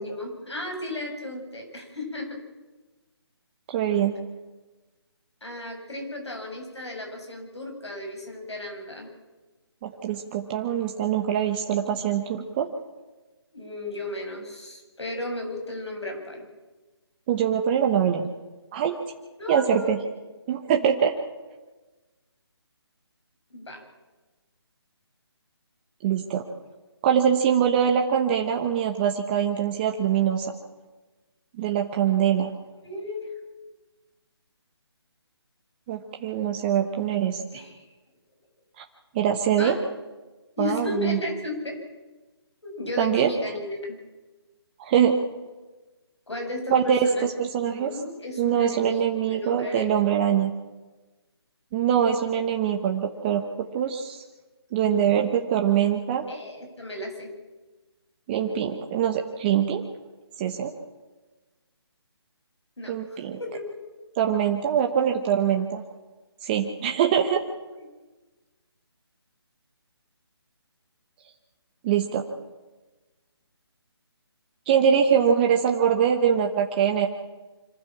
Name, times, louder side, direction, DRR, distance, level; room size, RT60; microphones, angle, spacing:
voice 1, 0.0-2.4 5.4-9.1 13.5-16.4 19.4-20.0 23.5-23.8 32.8-33.3 37.5-37.8 39.6-39.8 40.6-41.8 42.6-44.0 46.3-47.3 47.7-49.0 49.3-50.0 52.3-52.4 56.3-57.3 62.8-63.6 67.8-67.9, left 2 dB, 85° left, 2 dB, 7.4 m, -34 dB
voice 2, 3.7-4.1 9.8-12.7 17.3-18.3 18.7-18.9 19.5-20.0 20.5-21.1 26.0-26.4 27.0-30.5 31.6-32.5 35.9-37.6 38.8-38.9 39.1-39.8 40.6-41.2 43.0-43.3 44.8-45.2 46.7-47.9 48.4-50.5 51.7-54.2 54.7-56.3 58.3-59.8 60.4-60.7 62.9-63.4 64.2-65.8 66.4-67.4 71.8-72.2 74.7-77.1, right 8 dB, 20° right, 3 dB, 1.1 m, -23 dB
25.5 x 14.5 x 7.4 m, 1.2 s
figure-of-eight pair, 155°, 14 cm